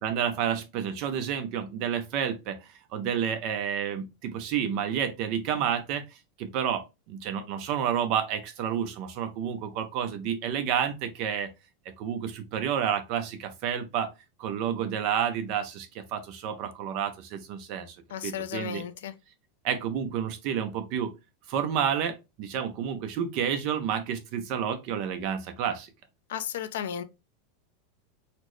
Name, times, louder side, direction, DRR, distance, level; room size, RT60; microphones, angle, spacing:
voice 1, 0.0-11.5 12.0-14.1 14.4-18.0 18.2-18.8 19.6-21.1 21.5-25.9, right 8 dB, 45° right, 0.5 m, -30 dB
voice 2, 18.1-19.1 26.3-27.0, left 9 dB, 85° left, 0.4 m, -34 dB
4.1 x 2.0 x 3.1 m
supercardioid pair, 160°, 0 cm